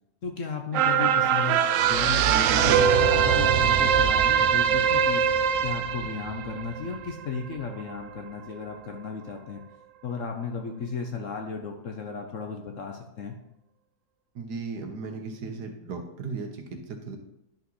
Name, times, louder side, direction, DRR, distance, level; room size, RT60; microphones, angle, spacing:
voice 1, 0.2-5.2 5.6-9.6 10.0-13.4, left 5 dB, 55° left, 3 dB, 1.0 m, -34 dB
sound 1, 0.7-7.4 7.8-7.9, right 8 dB, 85° right, 0.6 m, -22 dB
voice 2, 14.3-17.2, right 4 dB, 70° right, 4 dB, 1.6 m, -36 dB
10.5 x 6.1 x 3.1 m, 0.84 s
omnidirectional pair, 1.9 m